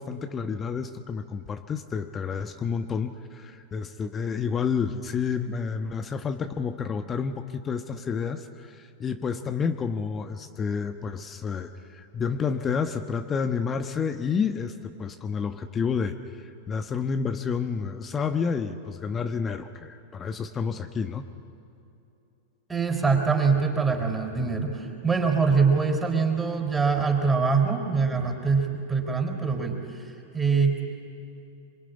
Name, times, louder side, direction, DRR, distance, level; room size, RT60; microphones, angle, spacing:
voice 1, 0.0-16.1 16.7-21.2, left 6 dB, 25° left, 8 dB, 1.1 m, -30 dB
voice 2, 22.7-30.8, right 5 dB, 15° right, 2 dB, 4.8 m, -24 dB
26.0 x 22.5 x 9.8 m, 2.8 s
hypercardioid pair, 95°, 0 cm